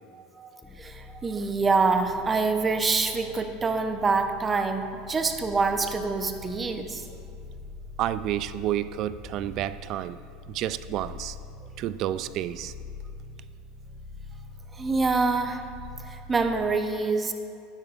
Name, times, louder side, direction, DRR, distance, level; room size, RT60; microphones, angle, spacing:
voice 1, 0.1-0.5 0.8-7.0 14.7-15.6 16.0-17.3, right 4 dB, 25° right, 0.8 m, -26 dB
sound 1, 0.6-16.8, left 3 dB, 20° left, 1.2 m, -44 dB
voice 2, 8.0-10.2 10.5-11.4 11.8-12.7, right 12 dB, 55° right, 0.3 m, -30 dB
12.5 x 9.9 x 2.5 m
hypercardioid pair, 95°, 0 cm